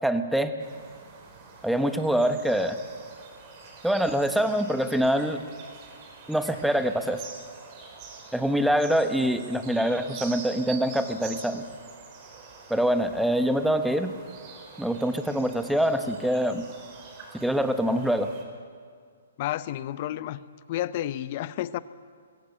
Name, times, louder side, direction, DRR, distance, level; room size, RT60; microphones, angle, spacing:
voice 1, 0.0-0.5 1.6-2.8 3.8-5.4 6.3-7.2 8.3-11.7 12.7-14.1 14.8-16.7 17.4-18.3, equal, ahead, 8 dB, 1.1 m, -25 dB
sound 1, 0.6-18.4, right 5 dB, 35° right, 4.8 m, -46 dB
voice 2, 19.4-20.4 20.7-21.8, left 13 dB, 40° left, 16 dB, 0.7 m, -31 dB
22.0 x 16.0 x 8.1 m, 2.1 s
hypercardioid pair, 135°, 0 cm